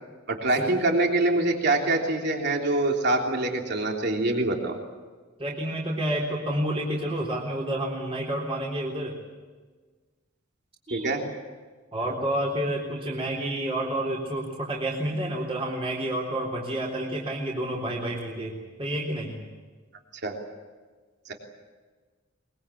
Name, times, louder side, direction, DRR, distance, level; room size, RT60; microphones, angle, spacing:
voice 1, 0.3-4.8 10.9-11.2 20.2-20.3, right 2 dB, 60° right, 2 dB, 3.3 m, -24 dB
voice 2, 5.4-9.2 10.9-11.1 11.9-19.4, right 1 dB, 30° right, -3 dB, 3.7 m, -29 dB
23.5 x 22.0 x 8.5 m, 1.4 s
head